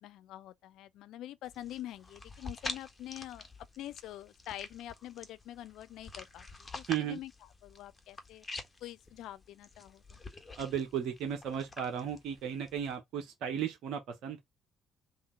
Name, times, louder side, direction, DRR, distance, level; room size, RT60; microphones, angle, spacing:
voice 1, 0.0-3.5 3.8-6.5 6.7-7.3 7.6-8.4 8.8-10.2, left 13 dB, 70° left, 0.3 m, -45 dB
sound 1, 1.4-12.9, left 3 dB, 30° left, 1.3 m, -47 dB
voice 2, 6.9-7.2 10.6-14.4, right 9 dB, 70° right, 0.9 m, -35 dB
3.8 x 2.7 x 3.6 m
hypercardioid pair, 55°, 0 cm